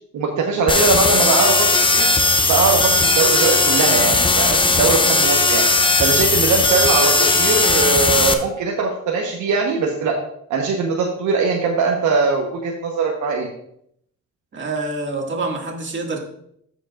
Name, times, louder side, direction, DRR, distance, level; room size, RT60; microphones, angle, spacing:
voice 1, 0.1-2.1 2.5-5.6 6.0-7.1 7.4-10.1 10.5-13.5, right 4 dB, 75° right, 0 dB, 1.2 m, -21 dB
sound 1, 0.7-8.3, left 3 dB, 15° left, 0.7 m, -17 dB
voice 2, 14.5-16.2, right 3 dB, 40° right, 0 dB, 2.1 m, -26 dB
14.0 x 5.2 x 2.5 m, 0.71 s
cardioid pair, 90°, 30 cm